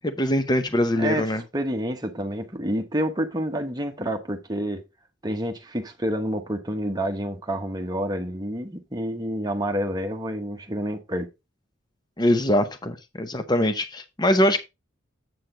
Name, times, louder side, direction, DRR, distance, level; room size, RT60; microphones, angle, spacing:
voice 1, 0.0-1.4 12.2-14.6, left 1 dB, 20° left, 0.7 m, -22 dB
voice 2, 1.5-4.8 5.2-11.3, equal, 20° right, 1.0 m, -28 dB
7.9 x 6.6 x 3.8 m
head